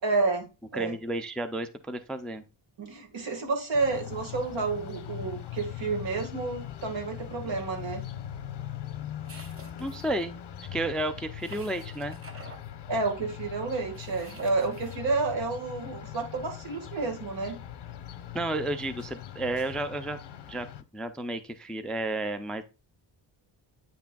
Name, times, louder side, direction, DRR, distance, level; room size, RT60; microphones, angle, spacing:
voice 1, 0.0-0.5 0.7-0.9 2.8-8.0 12.9-17.6, right 3 dB, 75° right, 3 dB, 1.7 m, -30 dB
voice 2, 0.7-2.4 9.8-10.4 10.7-12.2 18.3-20.2 20.5-20.7 20.9-22.6, right 1 dB, ahead, 10 dB, 0.3 m, -32 dB
sound 1, 3.7-20.8, left 11 dB, 65° left, 0.7 m, -41 dB
sound 2, 9.3-10.2 11.4-12.7 13.9-15.0, right 3 dB, 30° right, 0.9 m, -49 dB
8.8 x 5.9 x 2.2 m, 0.29 s
wide cardioid pair, 180°, 45 cm